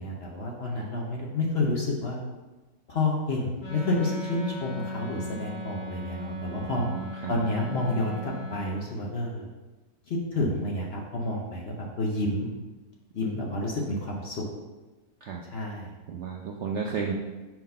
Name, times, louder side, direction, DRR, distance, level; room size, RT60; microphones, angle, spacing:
voice 1, 0.0-2.2 2.9-6.9 7.3-9.5 10.1-12.5 13.1-14.4 15.5-15.9, left 2 dB, 50° left, -1 dB, 0.8 m, -29 dB
Wind instrument woodwind instrument, 3.6-8.8, equal, 35° left, 1.2 m, -38 dB
voice 2, 6.7-7.4 13.3-13.4 15.2-15.4 16.1-17.1, right 6 dB, 70° right, 0 dB, 0.7 m, -33 dB
4.6 x 3.9 x 5.3 m, 1.2 s
omnidirectional pair, 1.7 m